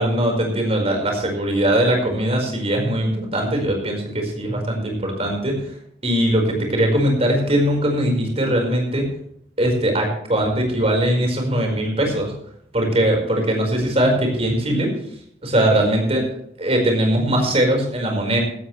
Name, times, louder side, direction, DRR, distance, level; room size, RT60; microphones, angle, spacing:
voice 1, 0.0-5.6 6.0-9.1 9.6-12.3 12.7-14.9 15.4-16.3 16.6-18.4, right 1 dB, 35° right, 2 dB, 4.9 m, -20 dB
16.5 x 13.0 x 3.3 m, 0.72 s
head